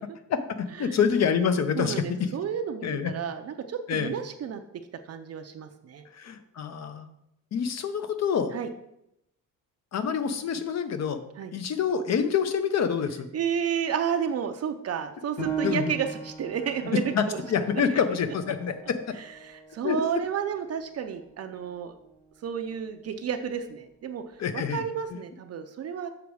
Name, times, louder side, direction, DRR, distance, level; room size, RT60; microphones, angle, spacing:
voice 1, 0.3-2.3 2.8-3.1 3.9-4.1 6.1-7.1 7.5-8.5 9.9-11.2 11.5-13.3 15.6-15.9 17.1-19.0 19.8-20.0 24.4-24.8, left 7 dB, 50° left, 10 dB, 0.8 m, -27 dB
voice 2, 1.7-4.6 5.1-6.0 8.5-8.7 11.4-11.5 13.3-17.4 17.9-18.0 19.2-21.9 22.4-26.1, right 7 dB, 50° right, 6 dB, 0.5 m, -31 dB
Piano, 15.4-20.5 21.0-21.1 21.7-22.2, right 4 dB, 75° left, 2.6 m, -38 dB
7.0 x 5.0 x 4.7 m, 0.80 s
cardioid pair, 155°, 33 cm